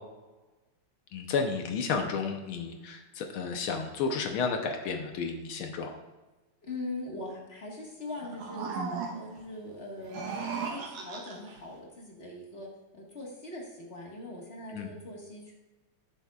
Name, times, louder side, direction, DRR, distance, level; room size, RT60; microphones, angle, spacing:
voice 1, 1.1-5.9 14.7-14.9, left 5 dB, 70° left, 4 dB, 1.2 m, -32 dB
voice 2, 6.6-10.2 10.7-15.5, left 2 dB, 30° left, -2 dB, 1.2 m, -41 dB
sound 1, 8.1-9.4 10.0-11.6, right 5 dB, 85° right, 2.5 m, -37 dB
13.5 x 7.2 x 2.4 m, 1.1 s
omnidirectional pair, 3.3 m